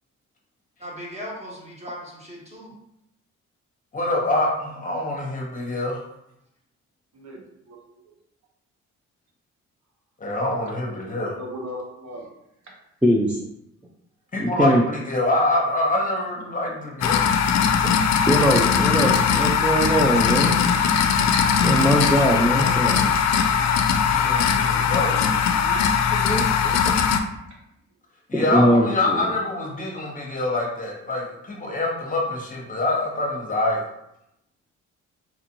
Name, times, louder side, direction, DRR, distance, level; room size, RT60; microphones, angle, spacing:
voice 1, 0.8-2.8, equal, 20° right, -3 dB, 1.4 m, -38 dB
voice 2, 3.9-6.0 10.2-11.3 14.3-17.2 24.1-25.2 28.3-33.8, left 2 dB, 25° left, -2 dB, 1.0 m, -25 dB
voice 3, 7.1-7.8 11.3-12.3 18.6-19.1 19.4-19.6 20.2-20.6 22.5-22.8 24.4-25.8, equal, 65° right, -1 dB, 1.1 m, -40 dB
voice 4, 13.0-13.4 14.4-14.8 18.3-20.5 21.6-23.1 26.1-26.8 28.3-29.3, equal, 5° right, -2 dB, 0.3 m, -21 dB
sound 1, 17.0-27.2, left 7 dB, 60° left, 0.4 m, -20 dB
4.4 x 2.4 x 2.9 m, 0.82 s
cardioid pair, 90°, 30 cm